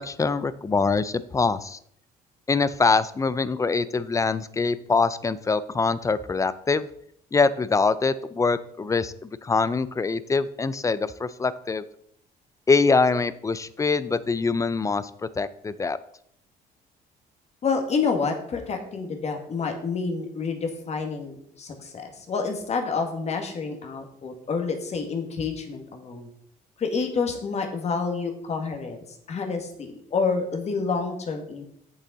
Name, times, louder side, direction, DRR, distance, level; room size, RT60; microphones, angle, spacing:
voice 1, 0.0-1.8 2.5-6.9 7.3-11.8 12.7-15.1 15.4-16.0, left 4 dB, 20° left, 16 dB, 0.4 m, -24 dB
voice 2, 17.6-26.3 26.8-29.0 29.3-31.6, left 4 dB, 40° left, 4 dB, 1.7 m, -28 dB
8.3 x 6.9 x 4.0 m, 0.70 s
cardioid pair, 110°, 17 cm